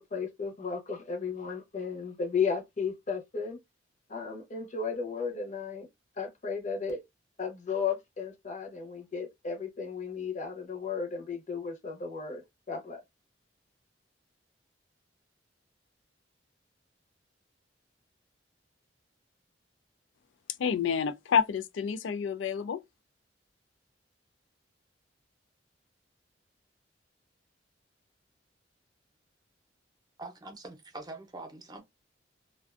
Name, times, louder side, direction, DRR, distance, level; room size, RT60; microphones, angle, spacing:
voice 1, 0.0-3.6 4.1-5.9 6.2-7.0 7.4-13.0, left 5 dB, 40° left, 0.8 m, -34 dB
voice 2, 20.6-22.8, left 7 dB, 85° left, 0.3 m, -28 dB
voice 3, 30.2-31.8, right 2 dB, 20° right, 0.7 m, -44 dB
2.5 x 2.2 x 2.4 m
head